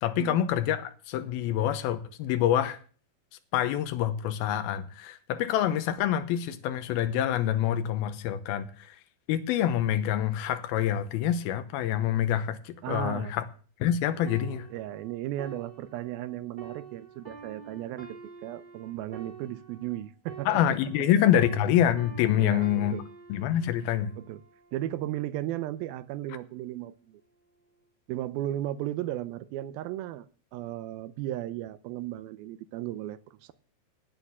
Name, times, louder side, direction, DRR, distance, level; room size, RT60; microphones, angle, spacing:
voice 1, 0.0-2.8 3.5-9.0 9.3-13.4 13.8-14.7 20.5-22.9 23.3-24.1, left 10 dB, 85° left, 2.8 m, -26 dB
voice 2, 12.8-13.3 14.7-20.8 22.3-23.1 24.2-24.4 24.7-27.2 28.1-30.3 30.5-33.5, right 13 dB, 80° right, 2.4 m, -35 dB
sound 1, 14.3-21.1 21.4-25.0 25.6-25.8, right 6 dB, 25° right, 1.1 m, -47 dB
9.3 x 9.0 x 7.2 m
omnidirectional pair, 4.3 m